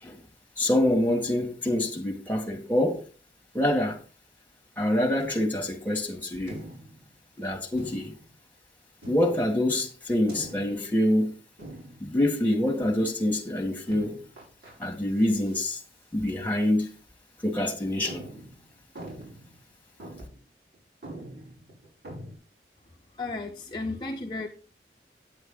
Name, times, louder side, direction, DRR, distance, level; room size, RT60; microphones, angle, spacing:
voice 1, 0.6-3.1 3.5-4.0 4.8-6.6 7.4-8.1 9.1-11.4 12.0-14.2 14.8-15.8 16.1-16.9 17.4-18.2, left 1 dB, 10° left, 1.8 m, -26 dB
sound 1, 5.2-5.7 6.5-7.1 7.8-8.3 9.0-9.6 10.3-10.9 11.6-12.2 12.7-13.1 13.9-14.7 15.2-15.7 16.0-16.1 16.8-16.9 17.4-17.5 18.0-19.6 20.0-20.4 20.7-20.8 21.0-22.4, right 1 dB, 70° right, 5.4 m, -44 dB
voice 2, 23.2-24.5, left 3 dB, 25° left, 0.7 m, -33 dB
9.4 x 7.9 x 3.9 m
head